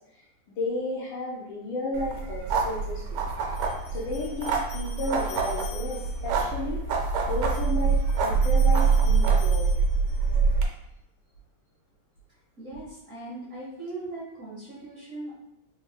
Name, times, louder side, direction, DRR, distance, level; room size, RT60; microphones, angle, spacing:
voice 1, 0.2-3.0 3.9-9.7, left 2 dB, 75° left, -3 dB, 1.2 m, -33 dB
sound 1, 1.9-10.7, right 5 dB, 80° right, 1.4 m, -25 dB
sound 2, 3.5-6.4 7.3-10.4, left 7 dB, 50° left, 1.3 m, -47 dB
voice 2, 12.6-15.3, right 2 dB, 50° right, -8 dB, 1.0 m, -39 dB
3.6 x 3.0 x 2.2 m, 0.82 s
omnidirectional pair, 2.3 m